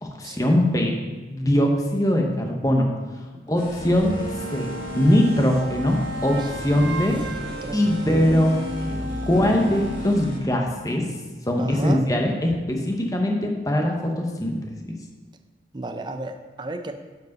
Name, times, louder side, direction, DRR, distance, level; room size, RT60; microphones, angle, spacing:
voice 1, 0.0-1.0 1.3-2.9 3.5-4.1 4.5-4.7 4.9-7.2 7.7-11.0 11.5-14.9, left 1 dB, 20° left, 2 dB, 0.8 m, -22 dB
sound 1, 3.6-10.4, equal, 45° left, 1.0 m, -35 dB
sound 2, 4.0-10.2, equal, 80° right, 0.6 m, -35 dB
voice 2, 7.4-8.0 11.6-12.0 15.7-16.9, right 2 dB, 25° right, 7 dB, 0.4 m, -33 dB
7.9 x 4.7 x 5.3 m, 1.3 s
head